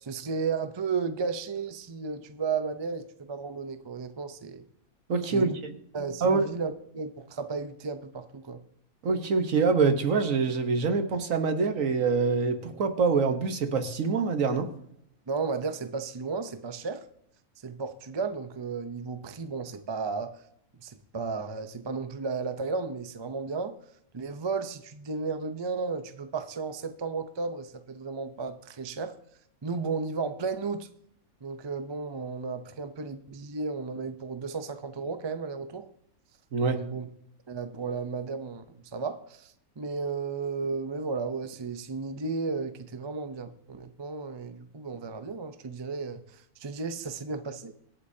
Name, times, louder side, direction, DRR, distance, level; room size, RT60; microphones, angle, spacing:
voice 1, 0.0-4.6 5.3-5.6 5.9-8.6 15.3-17.0 17.6-20.4 20.8-23.8 24.1-29.2 29.6-30.9 31.4-35.9 36.7-37.1 37.5-38.6 38.9-47.7, right 4 dB, 35° right, 9 dB, 0.4 m, -34 dB
voice 2, 5.1-5.7 6.2-6.5 9.0-14.7 36.5-36.8, right 4 dB, 65° right, 7 dB, 1.5 m, -25 dB
24.5 x 8.5 x 2.8 m, 0.70 s
omnidirectional pair, 1.6 m